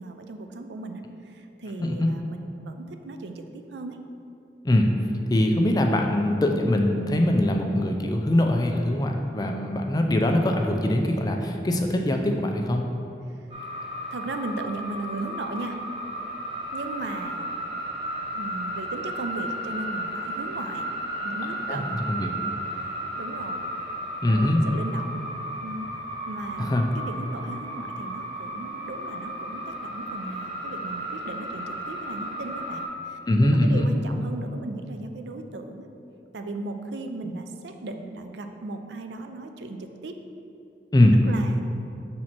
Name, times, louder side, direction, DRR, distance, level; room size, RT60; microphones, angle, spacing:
voice 1, 0.0-4.0 14.1-15.9 16.7-17.5 18.3-20.9 21.2-22.0 22.7-23.6 24.3-25.2 25.6-25.9 26.3-35.9 36.3-40.1 41.3-41.6, right 2 dB, 80° right, 6 dB, 0.4 m, -37 dB
voice 2, 1.8-2.1 4.6-4.9 5.3-12.8 21.7-21.8 22.1-22.3 24.2-24.6 26.6-26.9 33.3-33.9 37.2-37.4 40.9-41.2, left 1 dB, 20° left, 3 dB, 0.4 m, -22 dB
sound 1, 13.5-32.9, right 1 dB, 30° right, 1.1 m, -34 dB
6.2 x 4.4 x 4.3 m, 2.6 s
head